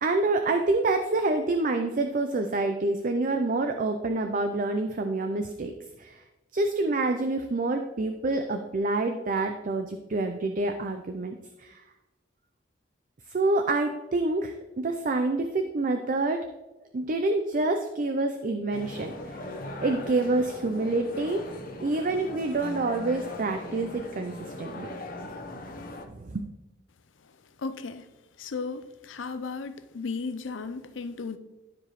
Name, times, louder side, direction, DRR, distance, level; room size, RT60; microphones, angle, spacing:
voice 1, 0.0-5.7 6.0-6.2 6.5-11.8 13.3-16.4 16.9-19.4 19.8-21.4 21.8-24.9 25.2-25.3 26.1-26.4, right 2 dB, 45° right, 6 dB, 0.5 m, -27 dB
sound 1, 18.7-26.0, left 1 dB, 50° left, 0.9 m, -39 dB
voice 2, 27.6-28.1 28.4-31.4, left 4 dB, 90° left, 11 dB, 0.6 m, -35 dB
12.5 x 4.9 x 3.1 m, 1.0 s
head